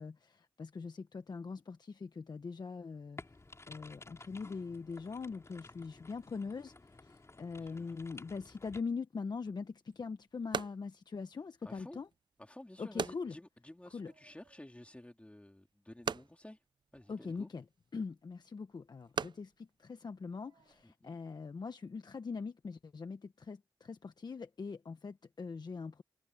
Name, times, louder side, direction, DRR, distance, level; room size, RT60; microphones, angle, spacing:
voice 1, 0.0-3.2 3.7-12.1 12.8-13.3 13.9-14.1 17.1-17.6 17.9-26.0, left 4 dB, 55° left, 1.2 m, -42 dB
sound 1, 3.2-8.8, left 2 dB, 30° left, 6.5 m, -54 dB
voice 2, 7.6-7.9 11.6-12.0 12.4-16.6 16.9-17.5 20.8-21.2, left 1 dB, 15° left, 3.5 m, -52 dB
sound 2, 9.5-20.8, right 6 dB, 60° right, 0.6 m, -45 dB
cardioid pair, 50°, 9 cm